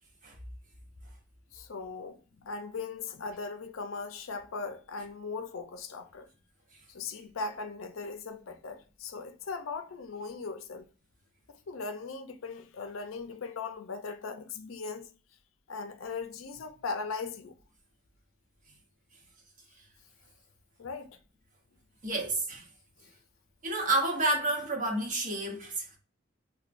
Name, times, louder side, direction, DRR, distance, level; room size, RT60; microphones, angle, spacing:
voice 1, 1.5-6.3 6.9-10.9 11.5-15.1 15.7-17.5 20.8-21.2, left 4 dB, 75° left, 0.5 m, -39 dB
voice 2, 22.0-22.7 23.6-26.0, right 2 dB, 40° right, 1.0 m, -30 dB
4.2 x 2.2 x 2.5 m
head